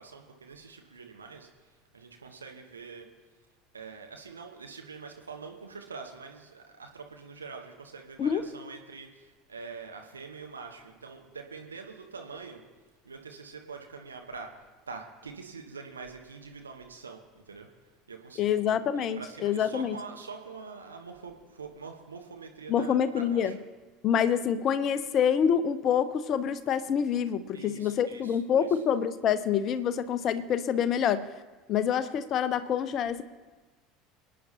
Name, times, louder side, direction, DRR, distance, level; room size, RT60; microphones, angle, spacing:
voice 1, 0.0-3.1 3.7-12.6 13.0-17.7 18.1-23.5 27.5-28.8, right 4 dB, 80° right, 3 dB, 1.2 m, -45 dB
voice 2, 18.4-20.0 22.7-23.5 24.0-31.3 31.7-33.2, left 8 dB, 40° left, 13 dB, 0.7 m, -26 dB
27.5 x 9.3 x 2.9 m, 1.3 s
figure-of-eight pair, 70°, 0 cm